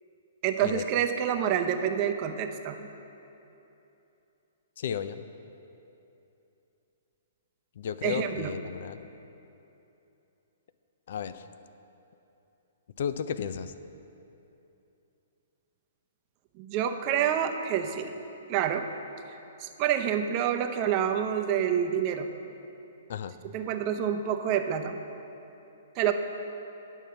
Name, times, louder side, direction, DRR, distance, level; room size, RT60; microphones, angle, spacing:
voice 1, 0.4-2.9 8.0-8.5 16.6-18.1 18.5-18.9 19.6-22.3 23.4-25.0 26.0-26.1, right 9 dB, 35° right, 6 dB, 0.6 m, -27 dB
voice 2, 4.8-5.2 7.8-9.1 11.1-11.4 13.0-13.7 23.1-23.3, left 8 dB, 60° left, 12 dB, 0.4 m, -33 dB
9.3 x 5.4 x 6.9 m, 2.9 s
hypercardioid pair, 130°, 0 cm